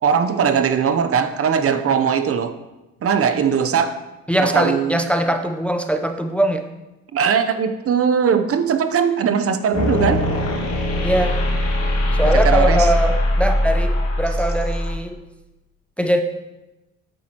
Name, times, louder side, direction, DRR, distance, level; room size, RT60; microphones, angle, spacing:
voice 1, 0.0-2.5 3.0-4.0 4.4-5.0 7.1-10.2 12.2-12.9, right 7 dB, 50° right, 9 dB, 0.7 m, -19 dB
voice 2, 4.3-6.6 11.0-11.4 12.1-15.2 16.0-16.2, right 1 dB, 5° left, 6 dB, 0.5 m, -21 dB
sound 1, 9.7-14.9, left 1 dB, 50° left, 2.2 m, -20 dB
8.7 x 7.5 x 2.9 m, 1.0 s
cardioid pair, 90°, 30 cm